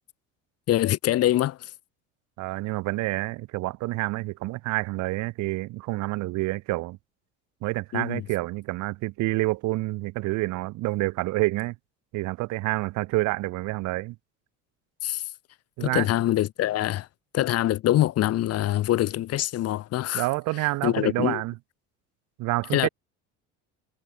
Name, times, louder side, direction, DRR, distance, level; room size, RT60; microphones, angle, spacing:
voice 1, 0.7-1.7 7.9-8.2 15.0-15.2 15.8-17.1 17.3-20.3 20.8-21.4 22.7-22.9, left 14 dB, 55° left, 2.0 m, -24 dB
voice 2, 2.4-7.0 7.6-11.8 12.1-14.2 15.8-16.1 20.1-21.5 22.4-22.9, right 20 dB, 70° right, 2.2 m, -28 dB
cardioid pair, 120°, 30 cm